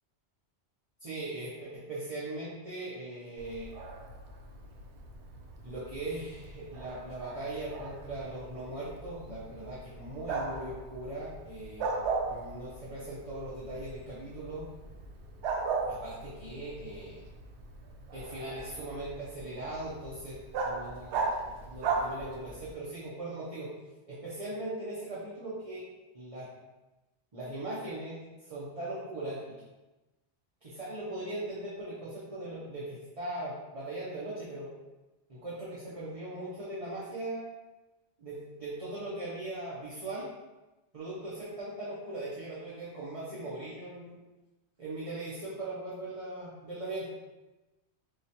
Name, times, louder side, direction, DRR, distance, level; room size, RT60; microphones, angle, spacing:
voice 1, 1.0-3.7 5.6-11.9 12.3-14.7 15.9-17.2 18.1-20.4 20.6-23.7 24.1-25.8 26.1-26.5 27.3-29.5 30.6-34.7 35.3-37.4 38.2-40.3 40.9-44.2 44.8-47.1, right 2 dB, 35° right, -8 dB, 0.8 m, -39 dB
Bark, 3.4-22.7, right 4 dB, 85° right, 0.9 m, -38 dB
4.7 x 2.4 x 2.8 m, 1.1 s
omnidirectional pair, 1.1 m